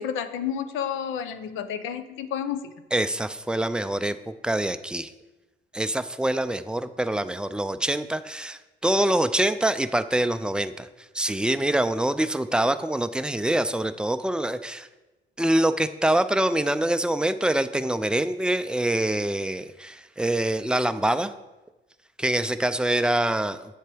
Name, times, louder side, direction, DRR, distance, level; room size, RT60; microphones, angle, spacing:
voice 1, 0.0-2.7, left 8 dB, 90° left, 11 dB, 0.7 m, -30 dB
voice 2, 2.9-5.1 5.7-10.9 11.1-14.9 15.4-21.3 22.2-23.7, right 1 dB, 5° right, 10 dB, 0.4 m, -25 dB
9.1 x 7.4 x 3.4 m, 1.1 s
cardioid pair, 90°, 20 cm